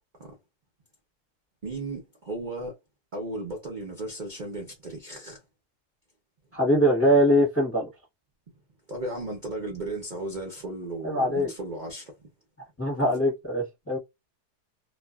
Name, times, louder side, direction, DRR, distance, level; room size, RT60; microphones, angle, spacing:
voice 1, 1.6-2.8 3.1-5.4 8.9-12.1, right 2 dB, 40° right, 0.7 m, -35 dB
voice 2, 6.5-7.9 11.0-11.5 12.8-14.0, equal, 10° left, 0.9 m, -22 dB
2.4 x 2.4 x 2.3 m
omnidirectional pair, 1.7 m